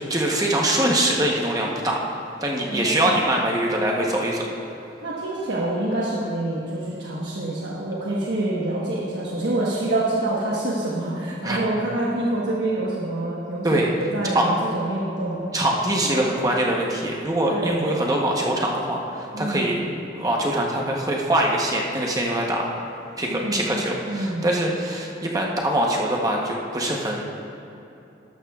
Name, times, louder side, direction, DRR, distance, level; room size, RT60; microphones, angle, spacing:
voice 1, 0.1-2.0 2.4-4.5 11.4-11.6 13.6-13.9 14.3-14.5 15.5-19.8 20.2-22.7 23.2-27.3, right 1 dB, 20° right, -1 dB, 0.9 m, -23 dB
voice 2, 2.7-3.2 5.0-15.4 16.0-16.2 17.5-17.9 19.3-19.8 23.3-23.8 24.1-24.5, right 1 dB, 70° right, -6 dB, 1.2 m, -26 dB
13.0 x 12.0 x 2.4 m, 2.9 s
head